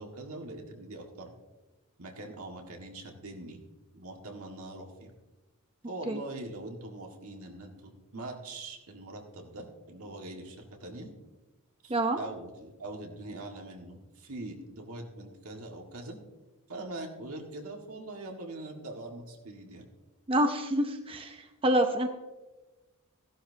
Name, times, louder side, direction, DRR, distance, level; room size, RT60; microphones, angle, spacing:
voice 1, 0.0-1.3 2.0-3.6 3.9-5.1 5.9-11.1 11.8-16.2 16.7-19.9, right 2 dB, 75° right, 2 dB, 1.8 m, -42 dB
voice 2, 20.3-22.1, right 1 dB, 25° right, 5 dB, 0.6 m, -27 dB
15.5 x 11.5 x 2.8 m, 1.2 s
head